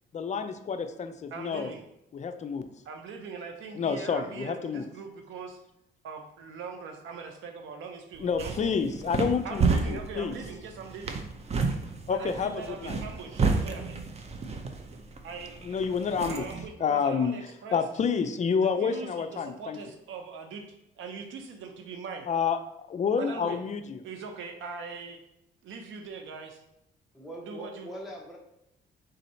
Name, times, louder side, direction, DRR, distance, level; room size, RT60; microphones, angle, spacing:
voice 1, 0.1-1.7 2.1-2.7 3.8-4.8 8.2-10.4 12.1-13.0 15.6-16.5 16.8-17.4 17.7-19.8 22.3-22.6 22.9-24.0, left 6 dB, 35° left, 8 dB, 0.4 m, -29 dB
voice 2, 1.3-1.8 2.8-5.6 6.0-8.7 9.4-11.2 12.0-14.0 15.2-15.5 16.3-17.8 18.5-20.6 21.0-22.3 23.1-23.6 24.0-25.2 25.6-26.6 27.4-27.9, right 5 dB, 80° right, 5 dB, 0.7 m, -41 dB
sound 1, 8.1-16.7, right 4 dB, 30° right, 0.5 m, -31 dB
voice 3, 27.1-28.4, equal, ahead, -4 dB, 0.8 m, -41 dB
3.8 x 2.7 x 4.3 m, 0.83 s
cardioid pair, 90°, 20 cm